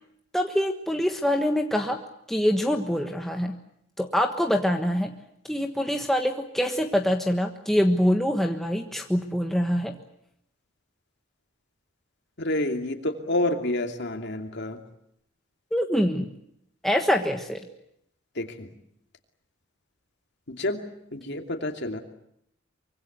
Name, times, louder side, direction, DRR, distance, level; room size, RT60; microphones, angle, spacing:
voice 1, 0.3-2.0 2.3-3.6 4.0-5.1 5.5-10.0 15.7-16.3 16.8-17.6, equal, ahead, 3 dB, 1.4 m, -24 dB
voice 2, 12.4-14.8 18.3-18.7 20.5-20.8 21.1-22.0, left 1 dB, 60° left, 4 dB, 2.8 m, -29 dB
24.5 x 24.0 x 8.1 m, 0.74 s
head